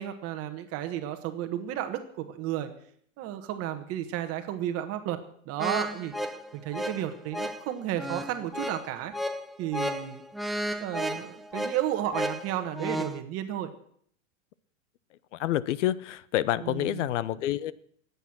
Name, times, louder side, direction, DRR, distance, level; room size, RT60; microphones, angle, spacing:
voice 1, 0.0-2.7 3.2-5.2 5.5-6.1 6.5-9.1 9.6-10.2 10.8-13.7 16.6-17.1, right 12 dB, 35° right, 8 dB, 1.4 m, -32 dB
sound 1, 5.6-13.2, equal, ahead, 0.7 m, -34 dB
voice 2, 15.3-17.7, left 13 dB, 65° left, 19 dB, 0.9 m, -28 dB
20.5 x 8.4 x 6.1 m, 0.63 s
hypercardioid pair, 130°, 38 cm